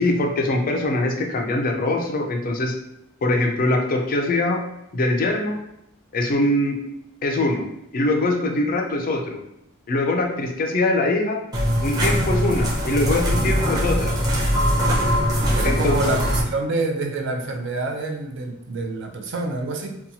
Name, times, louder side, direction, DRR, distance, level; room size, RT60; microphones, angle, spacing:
voice 1, 0.0-2.7 3.2-4.6 4.9-5.6 6.1-6.8 7.2-7.7 7.9-9.4 9.9-11.4 11.8-14.1 15.6-16.0, left 2 dB, 40° left, 3 dB, 0.4 m, -22 dB
sound 1, 11.5-16.4, equal, 20° right, 0.6 m, -21 dB
voice 2, 15.5-20.0, right 3 dB, 60° right, 3 dB, 0.4 m, -27 dB
2.7 x 2.2 x 2.7 m, 0.81 s
head